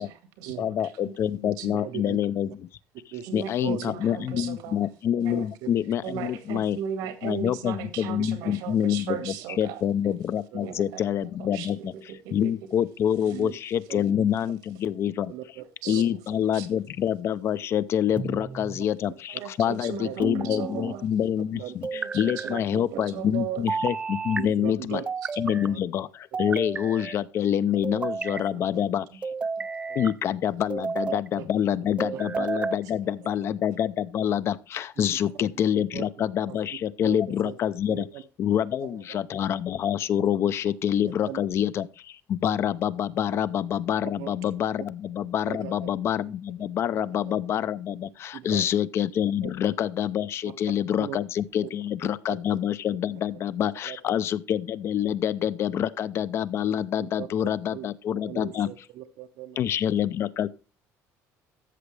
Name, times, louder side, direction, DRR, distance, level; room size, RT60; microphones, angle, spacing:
voice 1, 0.0-1.2 1.4-1.8 3.3-4.8 5.2-5.5 6.0-9.8 10.6-12.7 13.3-13.4 15.8-16.0 16.5-16.7 19.3-21.0 21.9-23.7 27.6-28.0 28.3-28.6 29.1-29.2 29.6-29.7 32.2-32.5, right 8 dB, 90° right, 2.0 m, -37 dB
voice 2, 0.6-2.7 3.3-6.8 7.2-9.2 9.6-11.9 12.3-15.3 15.9-25.0 25.4-29.1 29.9-38.1 38.4-58.7 59.6-60.5, left 9 dB, 45° left, 0.5 m, -26 dB
voice 3, 1.7-2.2 3.1-3.3 3.6-3.9 5.3-5.7 6.1-6.3 8.4-8.7 10.0-10.1 10.5-10.8 13.3-13.5 13.9-14.2 15.3-16.2 19.3-20.2 20.7-20.8 21.5-21.7 24.3-25.0 25.5-25.8 28.7-28.9 29.9-30.0 31.4-31.5 32.1-32.5 32.8-33.3 35.0-35.2 35.7-36.1 36.5-36.6 37.0-37.2 37.4-37.6 37.9-38.2 38.8-39.0 41.3-41.4 44.0-44.3 44.8-44.9 45.5-45.9 46.9-47.3 48.3-48.6 49.4-49.5 50.4-50.5 51.0-51.2 51.6-51.7 52.3-52.6 53.8-54.1 57.0-57.3 57.7-57.9 58.3-59.8, right 12 dB, 70° right, 0.8 m, -39 dB
sound 1, 18.2-18.8 20.2-21.0 21.8-22.6 23.7-24.4 25.1-25.7 26.3-27.2 27.8-28.5 29.2-30.1 30.7-31.3 32.0-32.8, right 4 dB, 15° right, 0.3 m, -31 dB
13.5 x 7.0 x 3.3 m
cardioid pair, 155°, 6 cm